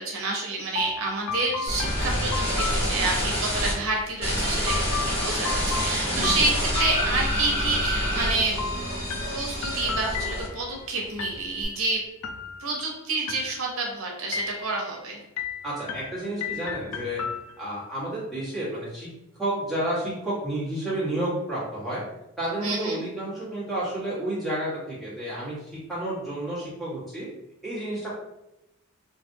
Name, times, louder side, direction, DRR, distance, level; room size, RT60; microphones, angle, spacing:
voice 1, 0.0-8.6 9.3-12.0 12.6-15.2 22.6-23.0, right 3 dB, 80° right, 0 dB, 0.8 m, -29 dB
sound 1, 0.8-3.5 4.7-7.7 8.6-10.8 11.2-11.8 12.2-12.9 13.3-13.9 14.3-15.0 15.4-17.8, left 5 dB, 85° left, 0.4 m, -35 dB
sound 2, 1.7-3.7 4.2-10.8 11.1-11.6, equal, 30° left, 1.3 m, -27 dB
sound 3, 7.2-12.8, right 1 dB, 60° left, 1.4 m, -45 dB
voice 2, 15.6-17.2 17.6-19.1 19.4-22.0 22.4-27.3 27.6-28.1, right 1 dB, ahead, -11 dB, 1.5 m, -30 dB
3.2 x 2.6 x 2.7 m, 0.91 s
head